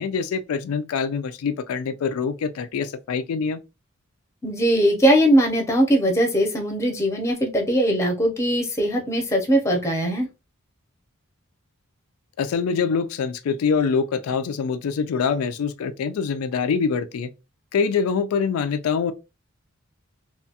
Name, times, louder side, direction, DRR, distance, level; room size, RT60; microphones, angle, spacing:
voice 1, 0.0-3.6 12.4-17.3 17.7-19.1, left 5 dB, 75° left, 0.3 m, -24 dB
voice 2, 4.4-10.3, equal, 15° left, 0.6 m, -20 dB
2.7 x 2.2 x 2.7 m
head